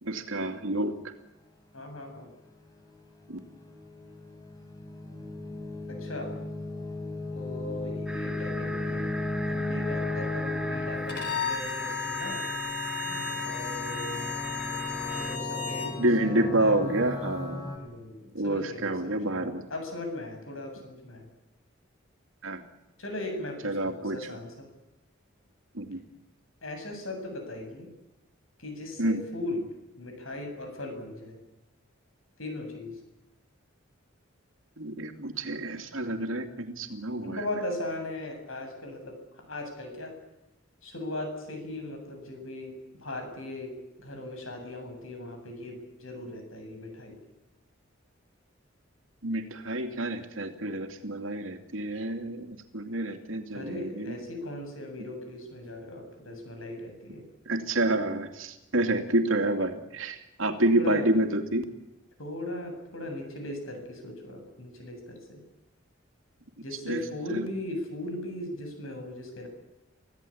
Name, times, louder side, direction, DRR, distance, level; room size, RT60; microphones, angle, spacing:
voice 1, 0.0-0.9 3.3-3.4 16.0-17.7 18.3-19.7 22.4-22.6 23.6-24.3 25.7-26.0 29.0-29.2 34.8-37.4 49.2-54.2 57.5-61.6 66.8-67.0 67.3-67.4, right 1 dB, 85° right, 5 dB, 2.7 m, -28 dB
voice 2, 1.7-2.3 5.9-6.3 7.3-9.2 9.5-12.4 13.0-14.3 15.1-16.8 17.7-21.3 23.0-24.7 26.6-27.9 28.6-29.7 30.0-31.4 32.4-32.9 37.2-40.1 40.8-42.7 43.0-43.7 44.0-47.2 53.5-57.2 60.8-61.1 62.2-65.4 66.6-69.5, left 1 dB, 85° left, 5 dB, 7.8 m, -38 dB
sound 1, 2.9-17.8, left 2 dB, 20° left, 4.0 m, -36 dB
sound 2, 8.1-15.4, right 1 dB, 5° right, 1.3 m, -39 dB
Bowed string instrument, 11.1-16.0, left 7 dB, 55° left, 4.6 m, -34 dB
25.5 x 17.0 x 8.7 m, 0.98 s
head